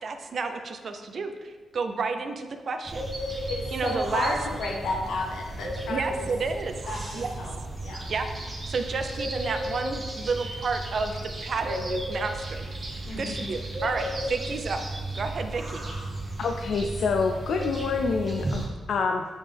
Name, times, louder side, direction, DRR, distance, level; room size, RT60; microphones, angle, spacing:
voice 1, 0.0-3.1 3.7-4.3 5.9-6.8 7.1-7.3 8.1-8.3 8.6-11.1 11.4-14.8 15.1-15.8, right 4 dB, 45° right, 7 dB, 0.5 m, -31 dB
sound 1, 2.9-18.7, right 1 dB, 20° right, 1.1 m, -34 dB
voice 2, 3.5-6.3 6.9-7.5 7.8-8.1 13.0-13.4, left 2 dB, 90° left, 0 dB, 1.1 m, -32 dB
voice 3, 16.4-19.3, left 5 dB, 65° left, 4 dB, 0.3 m, -27 dB
8.6 x 3.6 x 3.4 m, 1.5 s
wide cardioid pair, 145°, 0 cm